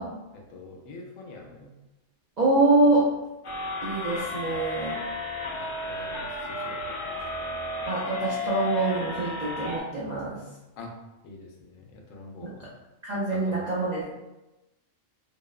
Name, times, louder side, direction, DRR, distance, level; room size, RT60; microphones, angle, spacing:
voice 1, 0.3-1.7 5.5-7.6 10.8-10.9 11.2-12.7 13.3-13.7, left 3 dB, 85° left, 1 dB, 1.0 m, -45 dB
voice 2, 2.4-3.2 3.8-5.1 7.9-10.4 12.4-12.5 13.0-14.2, right 2 dB, 70° right, -7 dB, 0.4 m, -25 dB
sound 1, 3.4-9.8, left 2 dB, 65° left, 0.5 m, -33 dB
2.7 x 2.0 x 2.3 m, 1.0 s
omnidirectional pair, 1.3 m